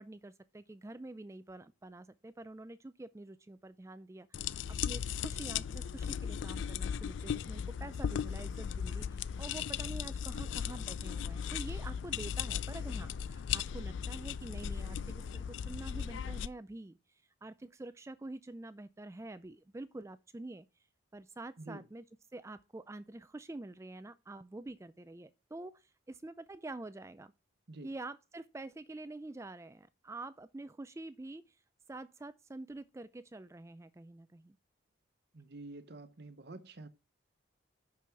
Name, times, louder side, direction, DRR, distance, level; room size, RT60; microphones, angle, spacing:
voice 1, 0.0-17.0 17.4-20.7 21.1-22.0 22.3-27.3 27.8-31.6 31.9-34.6, right 2 dB, 15° right, 0.3 m, -47 dB
sound 1, 4.3-16.5, left 8 dB, 65° left, 0.3 m, -37 dB
voice 2, 35.3-36.9, right 2 dB, 55° right, 0.9 m, -48 dB
6.2 x 5.9 x 5.7 m
head